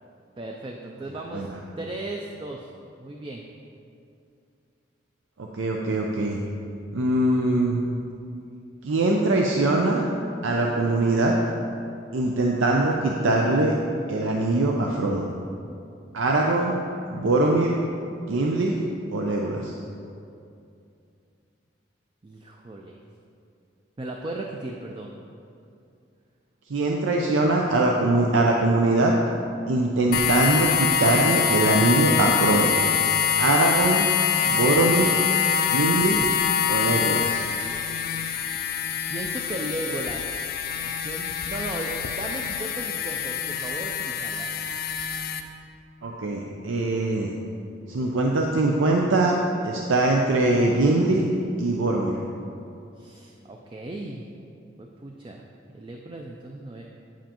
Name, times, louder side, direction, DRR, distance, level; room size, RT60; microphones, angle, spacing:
voice 1, 0.4-1.5 1.8-2.7 3.0-3.4 22.2-23.0 24.0-25.1 37.5-38.3 39.1-40.5 40.8-44.5 53.0-54.2 54.8-55.5 55.7-56.8, right 2 dB, 25° right, 1 dB, 0.3 m, -36 dB
voice 2, 5.4-6.4 6.9-7.8 8.8-10.0 10.4-11.3 12.1-13.8 14.1-15.3 16.1-16.8 17.1-17.7 18.3-18.8 19.1-19.7 26.7-29.1 29.7-32.7 33.4-34.1 34.4-35.1 35.7-36.2 36.7-37.4 46.0-47.3 47.9-49.4 49.6-51.2 51.6-52.1, right 2 dB, 90° right, 0 dB, 0.5 m, -22 dB
sound 1, 30.1-45.4, left 7 dB, 50° left, 0.4 m, -25 dB
8.8 x 7.3 x 2.9 m, 2.5 s
head